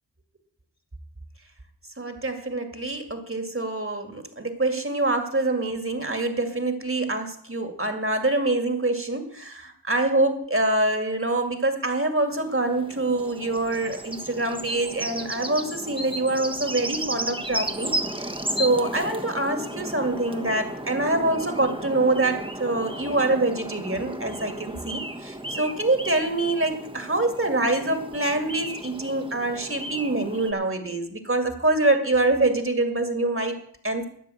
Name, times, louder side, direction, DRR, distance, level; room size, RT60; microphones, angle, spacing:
voice 1, 2.0-34.0, right 2 dB, 35° right, 6 dB, 2.2 m, -25 dB
sound 1, 12.3-30.5, right 1 dB, 15° right, 1.3 m, -34 dB
13.0 x 5.5 x 9.1 m, 0.63 s
cardioid pair, 40°, 37 cm